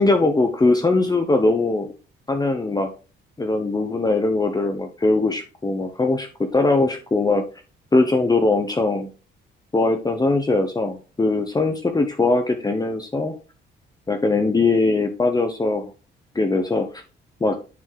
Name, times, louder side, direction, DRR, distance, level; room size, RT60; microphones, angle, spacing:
voice 1, 0.0-1.9 2.3-2.9 3.4-7.4 7.9-9.1 9.7-13.3 14.1-15.9 16.3-17.0 17.4-17.6, left 3 dB, 20° left, 6 dB, 1.1 m, -21 dB
9.4 x 4.4 x 4.7 m, 0.33 s
cardioid pair, 90°, 20 cm